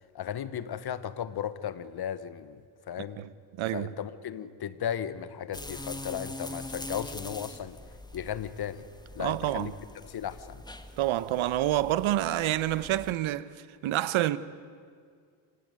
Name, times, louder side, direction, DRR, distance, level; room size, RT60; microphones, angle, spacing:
voice 1, 0.1-3.2 3.7-7.8 8.1-8.9 9.1-9.7 10.0-10.6, left 9 dB, 50° left, 1.3 m, -35 dB
voice 2, 3.6-3.9 9.2-9.7 11.0-14.4, right 14 dB, 75° right, 1.0 m, -28 dB
sound 1, 5.5-13.1, left 1 dB, 10° left, 1.6 m, -43 dB
27.0 x 17.0 x 9.5 m
cardioid pair, 95°, 48 cm